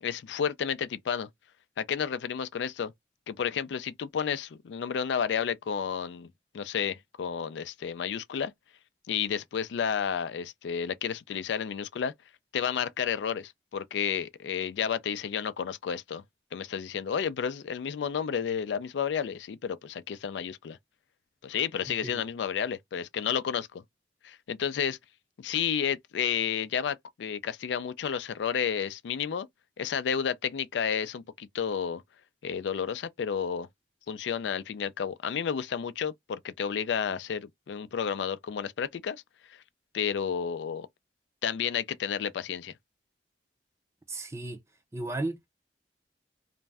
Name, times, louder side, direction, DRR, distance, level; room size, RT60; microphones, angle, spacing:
voice 1, 0.0-1.3 1.8-2.9 3.3-6.3 6.5-8.5 9.1-12.1 12.5-16.2 16.5-20.8 21.4-23.8 24.2-25.0 25.4-29.5 29.8-32.0 32.4-33.7 34.1-39.2 39.5-39.6 39.9-40.9 41.4-42.7, left 7 dB, 85° left, 0.4 m, -31 dB
voice 2, 44.1-44.6 44.9-45.4, right 2 dB, 15° right, 0.5 m, -34 dB
2.5 x 2.1 x 3.3 m
head